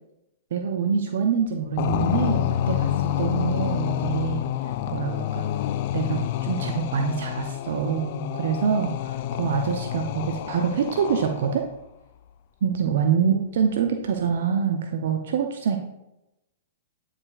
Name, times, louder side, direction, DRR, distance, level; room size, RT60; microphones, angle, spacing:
voice 1, 0.5-4.5 4.9-5.5 5.9-11.6 12.6-15.8, right 7 dB, 65° right, 4 dB, 0.6 m, -25 dB
sound 1, 1.8-11.7, left 12 dB, 50° left, 0.3 m, -28 dB
9.5 x 4.9 x 2.4 m, 0.92 s
figure-of-eight pair, 110°, 0 cm